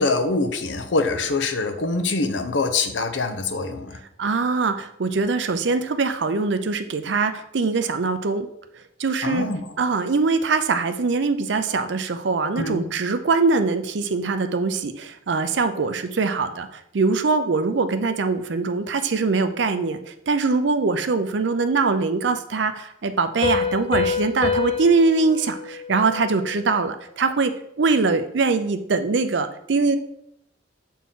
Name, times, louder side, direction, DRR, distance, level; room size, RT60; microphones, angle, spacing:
voice 1, 0.0-4.0 9.2-9.7 12.5-12.8, left 3 dB, 80° left, 7 dB, 0.7 m, -24 dB
voice 2, 4.2-8.5 9.0-9.5 9.8-30.0, right 4 dB, 75° right, 9 dB, 0.5 m, -22 dB
Piano, 23.4-26.8, left 6 dB, 30° left, 0.6 m, -27 dB
7.1 x 4.3 x 3.7 m, 0.76 s
head